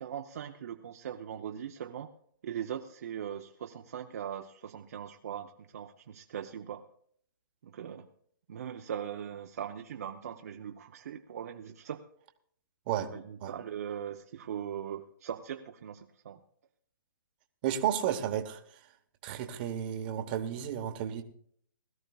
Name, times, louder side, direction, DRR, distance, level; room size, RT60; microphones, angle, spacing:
voice 1, 0.0-2.1 2.4-6.8 7.6-8.1 8.5-12.0 13.0-16.4, right 9 dB, 45° right, 4 dB, 0.7 m, -40 dB
voice 2, 17.6-18.6 19.2-21.2, right 10 dB, 25° right, 6 dB, 1.0 m, -32 dB
20.5 x 13.5 x 2.3 m, 0.63 s
hypercardioid pair, 165°, 12 cm